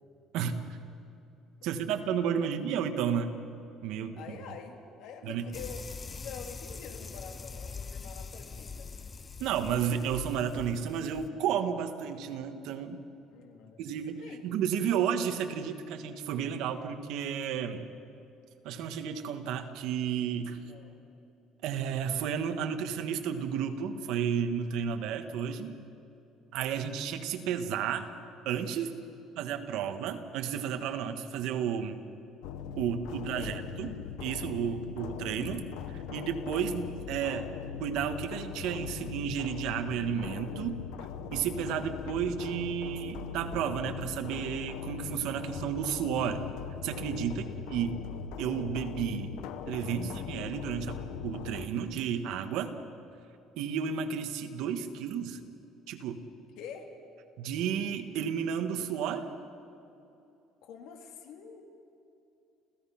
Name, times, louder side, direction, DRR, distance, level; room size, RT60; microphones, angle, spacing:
voice 1, 1.6-3.4 3.8-4.2 5.2-5.5 9.4-13.0 13.8-17.8 18.6-20.6 21.6-25.8 26.5-28.1 28.4-28.9 29.4-32.0 32.8-37.5 37.8-40.8 41.3-46.4 46.8-48.0 48.4-49.3 49.7-52.7 53.6-55.4 55.9-56.2 57.4-59.3, right 8 dB, 70° right, 7 dB, 1.5 m, -32 dB
voice 2, 4.2-5.9 6.1-8.9 13.3-14.4 20.6-21.0 26.7-26.9 28.9-29.2 29.8-30.0 33.1-33.6 47.3-47.6 56.6-56.9 60.6-61.6, left 7 dB, 70° left, 4 dB, 2.5 m, -47 dB
sound 1, 5.5-11.3, left 4 dB, 20° left, 0.5 m, -43 dB
sound 2, 32.4-51.7, left 8 dB, 85° left, 1.2 m, -40 dB
29.5 x 15.0 x 5.9 m, 2.8 s
cardioid pair, 155°, 0 cm